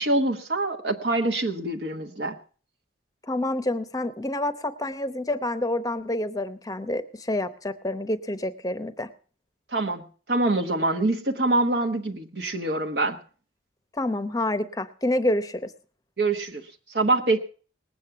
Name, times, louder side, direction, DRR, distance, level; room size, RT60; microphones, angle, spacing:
voice 1, 0.0-2.4 9.7-13.2 16.2-17.4, right 2 dB, 55° right, 3 dB, 1.1 m, -25 dB
voice 2, 3.3-9.1 13.9-15.7, left 1 dB, 20° left, 11 dB, 0.8 m, -28 dB
19.5 x 8.5 x 5.8 m, 0.41 s
head